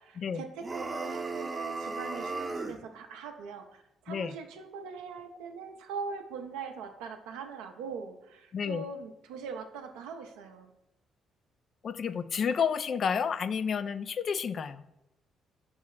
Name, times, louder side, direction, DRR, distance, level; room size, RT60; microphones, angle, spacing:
voice 1, 0.0-10.7, right 5 dB, 70° right, 5 dB, 0.7 m, -42 dB
sound 1, 0.6-2.8, right 3 dB, 30° right, 0.8 m, -35 dB
voice 2, 8.5-8.9 11.8-14.8, left 6 dB, 50° left, 13 dB, 0.3 m, -30 dB
6.3 x 3.1 x 5.7 m, 0.89 s
hypercardioid pair, 45°, 0 cm